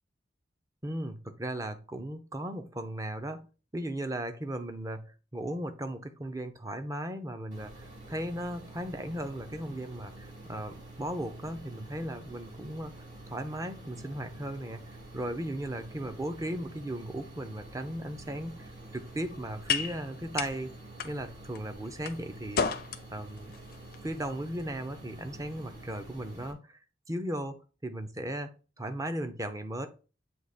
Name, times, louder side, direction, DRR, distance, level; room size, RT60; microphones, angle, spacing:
voice 1, 0.8-3.4 3.7-12.9 13.3-14.8 15.1-20.7 21.0-22.7 23.1-23.5 24.0-26.8 27.1-28.5 28.8-29.9, right 1 dB, 20° right, 8 dB, 0.6 m, -36 dB
sound 1, 7.5-26.5, right 2 dB, 40° right, 2.6 m, -48 dB
sound 2, 18.1-26.5, left 6 dB, 55° left, 0.6 m, -38 dB
7.8 x 2.9 x 4.2 m, 0.35 s
head